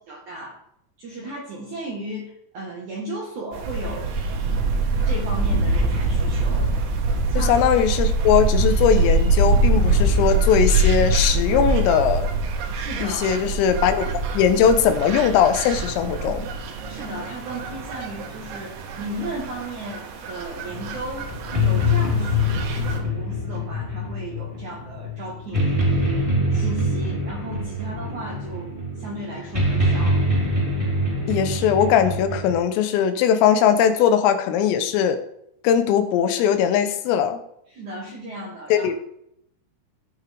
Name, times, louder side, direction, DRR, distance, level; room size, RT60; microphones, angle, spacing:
voice 1, 0.1-0.6 1.0-4.1 5.1-7.0 7.3-7.6 12.7-13.4 16.8-21.3 21.6-25.7 26.5-30.2 37.7-39.0, right 1 dB, 65° right, -3 dB, 1.9 m, -35 dB
sound 1, 3.5-23.0, right 2 dB, 90° right, 4.3 m, -24 dB
voice 2, 7.4-12.3 13.0-14.1 14.4-16.5 31.3-35.2 35.6-37.4 38.7-39.0, left 8 dB, 85° left, 9 dB, 3.6 m, -20 dB
sound 2, 20.7-32.5, left 1 dB, 5° right, 4.3 m, -24 dB
19.0 x 7.2 x 3.5 m, 0.75 s
omnidirectional pair, 5.8 m